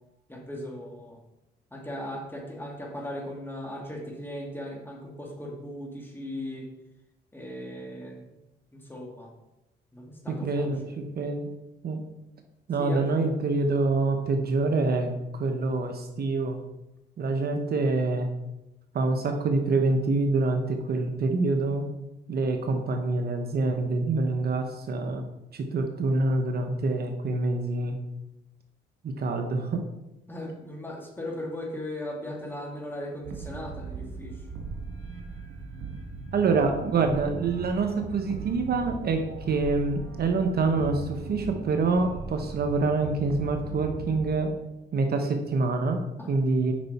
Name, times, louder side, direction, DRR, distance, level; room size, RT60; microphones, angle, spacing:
voice 1, 0.3-1.2 1.7-6.7 7.3-8.2 8.7-9.3 9.9-11.0 12.8-13.2 30.3-34.4 46.2-46.3, left 1 dB, 10° left, 0 dB, 2.1 m, -38 dB
voice 2, 10.3-11.5 11.8-12.0 12.7-16.6 17.2-18.3 18.9-21.8 22.3-25.2 25.5-28.0 29.0-29.8 36.3-44.5 44.9-46.0 46.3-46.7, right 3 dB, 55° right, 5 dB, 0.9 m, -26 dB
sound 1, 33.2-44.4, right 4 dB, 90° right, 1.4 m, -39 dB
7.6 x 5.5 x 4.2 m, 0.94 s
cardioid pair, 90°, 20 cm